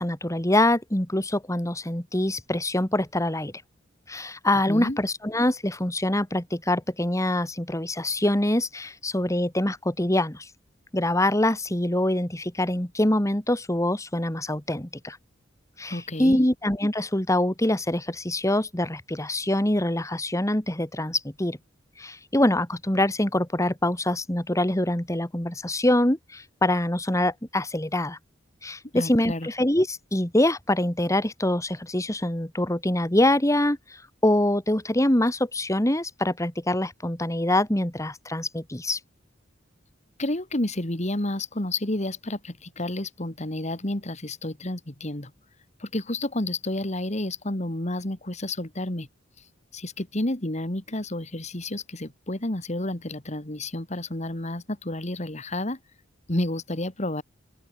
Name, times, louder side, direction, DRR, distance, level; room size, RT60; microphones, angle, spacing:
voice 1, 0.0-3.5 4.1-10.5 10.9-15.2 15.8-21.6 22.0-28.2 28.6-39.0, left 1 dB, 15° left, 2.1 m, -24 dB
voice 2, 4.7-5.0 15.9-16.5 28.9-29.5 40.2-45.3 45.8-49.1 49.7-55.8 56.3-57.2, left 1 dB, 35° left, 2.3 m, -30 dB
open air
head